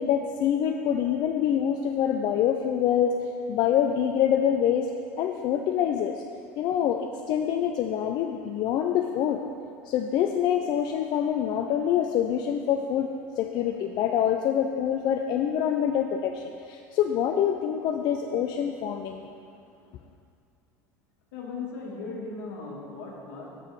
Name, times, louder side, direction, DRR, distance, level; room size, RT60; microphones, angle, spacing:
voice 1, 0.0-3.2 3.5-4.9 5.2-6.2 6.6-9.4 9.9-13.1 13.4-19.3, left 9 dB, 50° left, 4 dB, 0.4 m, -25 dB
voice 2, 21.3-23.6, left 4 dB, 75° left, -2 dB, 1.4 m, -37 dB
6.7 x 5.5 x 4.7 m, 2.4 s
hypercardioid pair, 80°, 9 cm